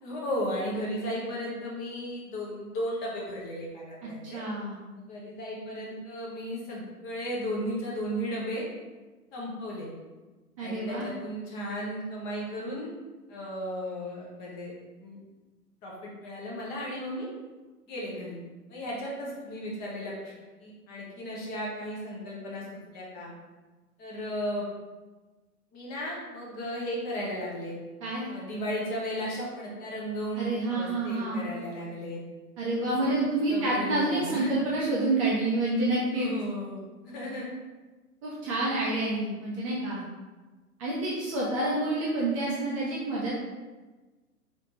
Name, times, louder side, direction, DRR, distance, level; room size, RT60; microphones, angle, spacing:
voice 1, 0.0-4.4 5.1-8.6 9.3-9.9 10.6-12.9 13.3-14.7 15.0-15.2 15.8-17.3 17.9-18.3 18.7-20.3 20.6-22.6 22.9-23.3 24.0-24.6 25.7-27.7 28.3-32.2 33.0-33.1 33.5-34.5 36.1-37.5, equal, 20° left, -4 dB, 0.7 m, -35 dB
voice 2, 4.3-4.8 10.6-11.1 28.0-28.3 30.4-31.4 32.6-36.3 38.2-40.0 40.8-43.3, right 2 dB, 20° right, -6 dB, 0.5 m, -28 dB
4.0 x 3.2 x 2.9 m, 1.2 s
figure-of-eight pair, 110°, 47 cm